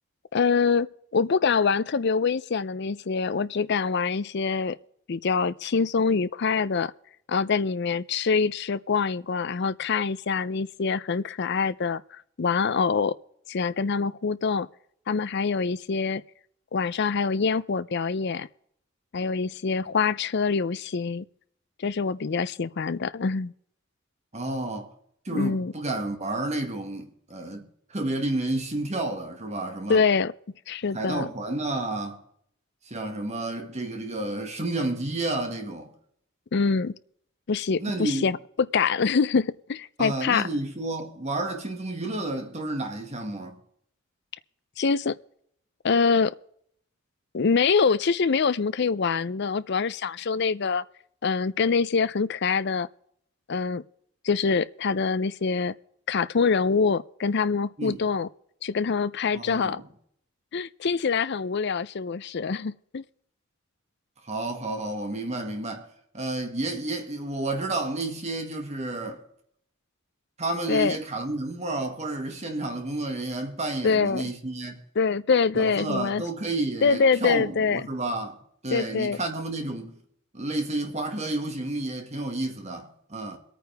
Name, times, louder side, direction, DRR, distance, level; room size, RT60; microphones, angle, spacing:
voice 1, 0.3-0.9 1.1-4.8 5.1-6.9 7.3-13.1 13.5-14.7 15.1-16.2 16.7-18.5 19.1-21.3 21.8-23.5 25.3-25.7 29.9-30.3 30.7-31.3 36.5-37.0 37.5-38.4 38.7-40.5 44.8-45.2 45.8-46.3 47.3-50.8 51.2-52.9 53.5-53.8 54.2-55.7 56.1-58.3 58.6-59.8 60.5-63.0 70.7-71.0 73.8-74.2 75.0-76.2 76.8-77.8 78.7-79.2, left 5 dB, 55° left, 0.5 m, -25 dB
voice 2, 24.3-24.9 25.3-30.0 30.9-32.2 32.9-35.9 37.8-38.3 40.0-43.6 57.8-58.1 59.3-59.9 64.2-65.9 66.1-69.2 70.4-74.8 75.5-78.4 78.6-80.0 80.3-83.4, right 2 dB, 35° right, 1.9 m, -31 dB
23.5 x 9.2 x 3.5 m
head